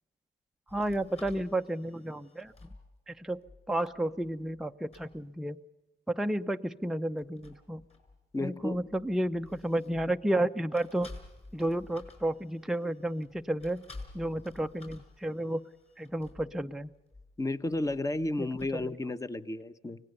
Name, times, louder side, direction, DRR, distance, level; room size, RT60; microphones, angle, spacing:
sound 1, 0.7-4.7 4.9-5.2 7.1-10.4 10.7-19.0, left 2 dB, 30° left, 5.9 m, -53 dB
voice 1, 0.7-2.7 3.1-3.4 3.7-5.6 6.1-7.8 8.4-11.1 11.5-13.9 14.1-15.7 16.0-16.9 18.4-18.9, right 1 dB, ahead, 6 dB, 0.6 m, -32 dB
voice 2, 8.3-8.8 17.4-20.0, left 2 dB, 15° left, 12 dB, 1.1 m, -32 dB
25.5 x 18.0 x 6.7 m, 1.1 s
cardioid pair, 90°, 20 cm